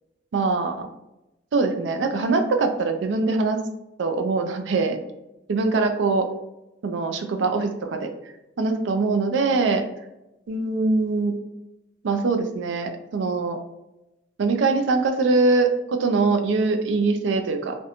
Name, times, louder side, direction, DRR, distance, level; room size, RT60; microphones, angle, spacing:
voice 1, 0.3-0.9 1.5-3.6 4.0-5.0 5.5-6.3 6.8-8.1 8.6-9.8 10.5-11.3 12.0-13.6 14.4-17.8, right 3 dB, 80° right, 6 dB, 0.4 m, -22 dB
2.5 x 2.2 x 2.8 m, 0.93 s
head